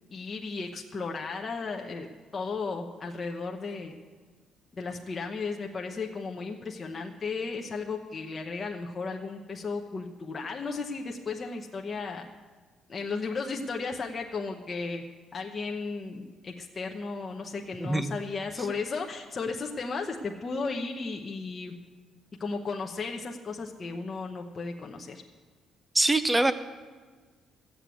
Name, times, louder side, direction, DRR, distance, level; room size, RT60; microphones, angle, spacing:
voice 1, 0.1-2.1 2.3-4.0 4.7-12.3 12.9-15.0 15.3-21.7 22.4-25.2, left 4 dB, 25° left, 1 dB, 0.8 m, -35 dB
voice 2, 17.8-18.1 25.9-26.5, right 2 dB, 10° right, 12 dB, 0.5 m, -23 dB
14.5 x 7.7 x 8.2 m, 1.4 s
cardioid pair, 180°, 0 cm